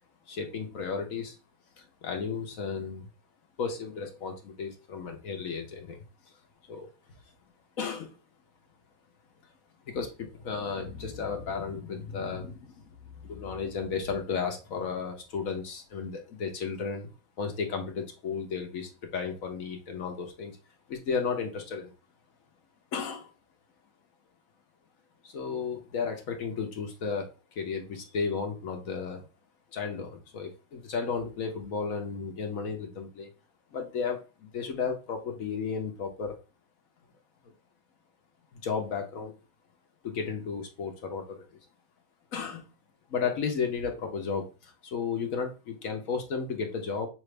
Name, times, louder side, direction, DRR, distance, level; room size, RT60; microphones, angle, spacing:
voice 1, 0.3-1.4 1.8-3.1 3.6-6.0 6.7-6.9 7.8-8.2 9.8-17.1 17.4-20.5 20.9-21.9 22.9-23.3 25.2-29.3 29.7-33.3 33.7-36.4 37.4-37.5 38.5-39.4 40.0-41.6 42.3-42.7 43.1-47.1, left 5 dB, 55° left, 3 dB, 1.1 m, -34 dB
5.9 x 2.5 x 3.2 m, 0.31 s
omnidirectional pair, 2.0 m